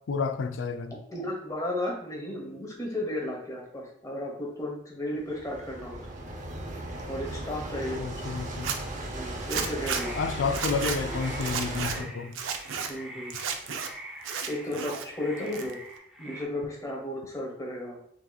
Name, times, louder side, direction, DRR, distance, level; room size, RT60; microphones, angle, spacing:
voice 1, 0.1-1.0 7.9-8.8 10.2-12.3, left 5 dB, 75° left, 0.4 m, -30 dB
voice 2, 1.1-6.0 7.1-8.0 9.1-10.1 12.0-12.1 12.8-13.3 14.5-15.8 16.2-18.0, left 1 dB, 20° left, 1.0 m, -34 dB
sound 1, 5.2-12.0, right 1 dB, 40° right, 0.7 m, -36 dB
Zipper (clothing), 8.5-8.8 9.5-10.0 10.5-11.0 11.4-12.0 12.3-12.9 13.3-13.9 14.2-15.1 15.4-16.0, right 6 dB, 90° right, 0.5 m, -32 dB
sound 2, 9.7-16.4, right 1 dB, ahead, 0.5 m, -45 dB
5.8 x 2.8 x 2.3 m
head